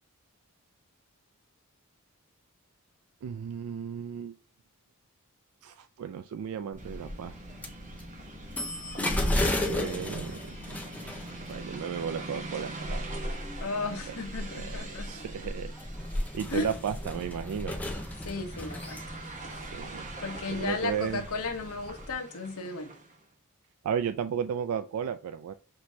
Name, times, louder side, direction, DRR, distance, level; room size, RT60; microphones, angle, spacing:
voice 1, 3.2-4.4 5.6-7.4 9.1-9.4 9.7-10.6 11.5-13.2 14.5-15.7 16.3-17.8 19.5-20.1 20.5-21.2 23.8-25.5, right 7 dB, 70° right, 11 dB, 0.3 m, -34 dB
sound 1, 6.7-22.1, left 1 dB, 5° left, 0.6 m, -35 dB
sound 2, 6.8-23.2, right 2 dB, 35° right, 1.1 m, -44 dB
voice 2, 8.9-9.5 13.6-15.2 16.5-16.7 18.2-19.0 20.2-22.9, left 3 dB, 70° left, 4 dB, 0.9 m, -34 dB
6.0 x 3.1 x 2.7 m, 0.36 s
head